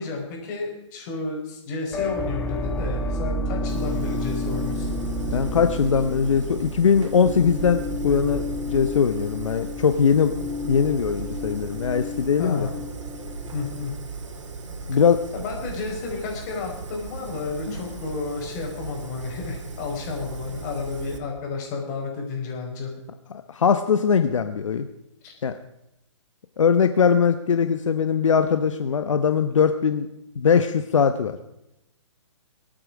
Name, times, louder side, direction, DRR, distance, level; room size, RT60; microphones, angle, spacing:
voice 1, 0.0-4.9 12.4-12.7 13.5-13.9 15.3-22.9 25.2-25.3, left 4 dB, 35° left, 1 dB, 5.0 m, -32 dB
sound 1, 1.9-13.8, left 1 dB, 10° left, 1.7 m, -31 dB
Fire, 3.7-21.2, right 4 dB, 70° right, 3.2 m, -37 dB
voice 2, 5.3-10.3 10.6-12.7 14.9-15.2 17.7-17.8 23.3-24.9 25.4-25.5 26.6-30.1 30.4-31.4, left 6 dB, 80° left, 9 dB, 1.1 m, -21 dB
26.0 x 9.0 x 5.0 m, 0.87 s
hypercardioid pair, 150°, 16 cm